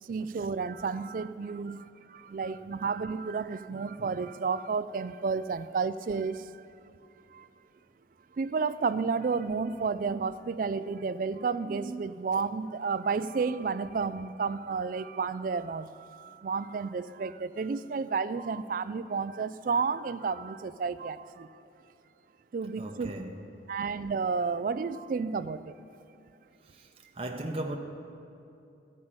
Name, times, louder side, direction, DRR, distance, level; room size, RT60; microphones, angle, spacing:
voice 1, 0.0-6.6 7.3-7.5 8.3-21.5 22.5-23.1 23.7-25.8, right 5 dB, 45° right, 0.3 m, -31 dB
voice 2, 22.8-23.8 26.6-27.8, right 1 dB, 30° right, 0.7 m, -38 dB
14.0 x 5.5 x 8.7 m
head